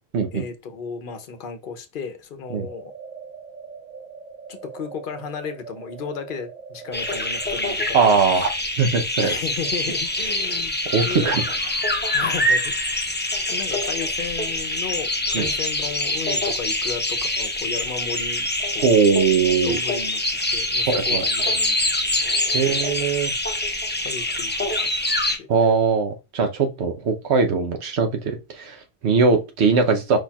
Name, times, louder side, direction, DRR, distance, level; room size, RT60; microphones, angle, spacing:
voice 1, 0.3-2.9 4.5-8.2 9.2-10.7 11.0-11.5 12.1-18.5 18.7-19.0 19.6-20.2 20.5-21.9 22.3-23.0 24.0-24.9 25.4-25.5, left 5 dB, 55° left, 0.9 m, -34 dB
sound 1, 2.5-7.5, right 5 dB, 45° right, 1.3 m, -41 dB
sound 2, 6.9-25.4, left 1 dB, 15° left, 0.5 m, -25 dB
voice 2, 7.9-9.3 10.9-11.6 15.3-15.5 18.8-19.8 20.9-21.2 22.5-23.3 25.5-30.2, right 5 dB, 90° right, 1.1 m, -20 dB
4.9 x 4.3 x 2.3 m
omnidirectional pair, 1.1 m